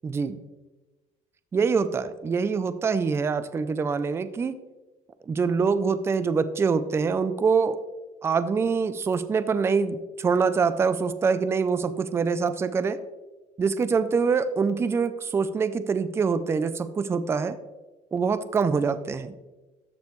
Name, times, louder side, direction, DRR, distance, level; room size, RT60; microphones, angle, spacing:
voice 1, 0.0-0.4 1.5-4.5 5.3-7.8 8.2-13.0 13.6-16.7 17.0-17.6 18.1-19.3, right 5 dB, 20° right, 13 dB, 0.4 m, -24 dB
13.5 x 5.3 x 3.1 m, 1.1 s
cardioid pair, 150°, 14 cm